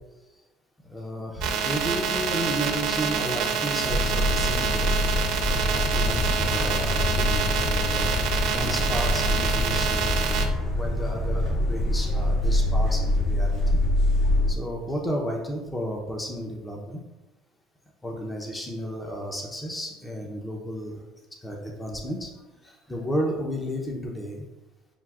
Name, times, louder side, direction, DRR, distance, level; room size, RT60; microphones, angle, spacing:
voice 1, 0.9-4.9 5.4-10.2 10.7-13.8 14.5-17.0 18.0-21.0 21.4-22.3 22.6-24.5, equal, 10° left, 0 dB, 0.6 m, -33 dB
sound 1, 1.4-10.5, right 6 dB, 70° right, 0.6 m, -27 dB
sound 2, 3.9-14.5, left 1 dB, 55° left, 1.2 m, -25 dB
7.1 x 2.5 x 2.4 m, 1.1 s
cardioid pair, 120°, 0 cm